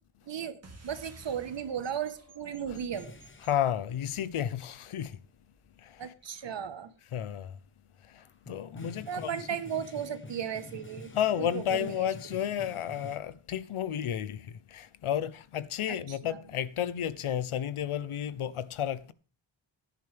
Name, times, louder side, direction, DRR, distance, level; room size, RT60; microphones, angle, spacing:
voice 1, 0.3-0.6 0.8-3.2 6.0-6.9 9.1-11.1 11.4-12.1 12.5-12.7 15.9-16.4, right 8 dB, 60° right, 1.3 m, -36 dB
sound 1, 0.6-5.5, right 2 dB, 30° right, 2.3 m, -55 dB
sound 2, 2.9-3.7 5.1-5.2 5.6-5.7 6.2-6.5 8.2-13.2, left 2 dB, 25° left, 1.0 m, -48 dB
voice 2, 3.4-5.2 5.8-6.1 7.1-7.5 8.1-9.5 11.1-19.1, left 10 dB, 90° left, 0.9 m, -32 dB
15.0 x 10.5 x 3.5 m
wide cardioid pair, 180°, 48 cm